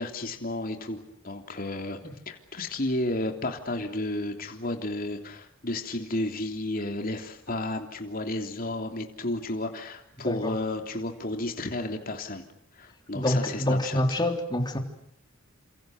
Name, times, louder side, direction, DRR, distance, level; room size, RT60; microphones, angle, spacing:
voice 1, 0.0-2.0 2.3-12.4 12.8-14.2, left 2 dB, 45° left, 4 dB, 3.3 m, -32 dB
voice 2, 13.1-14.8, left 1 dB, 20° left, 4 dB, 3.7 m, -26 dB
30.0 x 28.0 x 6.6 m, 0.71 s
head